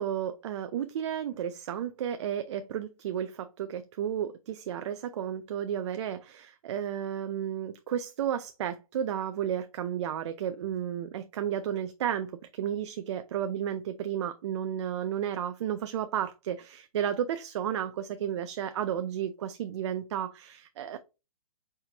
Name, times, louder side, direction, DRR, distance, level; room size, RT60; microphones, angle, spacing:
voice 1, 0.0-21.0, right 9 dB, 50° right, 0.4 m, -33 dB
4.4 x 3.5 x 2.7 m
hypercardioid pair, 145°, 19 cm